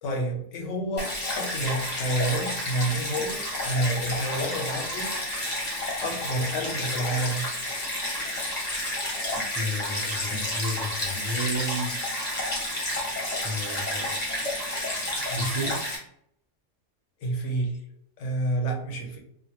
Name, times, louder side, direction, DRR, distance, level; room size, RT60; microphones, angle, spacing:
voice 1, 0.0-5.2 6.0-7.5 15.3-15.6 17.2-17.8 18.2-19.2, right 1 dB, 75° left, 2 dB, 1.1 m, -29 dB
Stream, 1.0-16.0, left 1 dB, 35° left, 0.9 m, -30 dB
voice 2, 9.5-11.9 13.4-14.1 15.3-15.8, equal, 25° right, -4 dB, 0.6 m, -32 dB
3.2 x 2.2 x 2.9 m, 0.68 s
omnidirectional pair, 1.3 m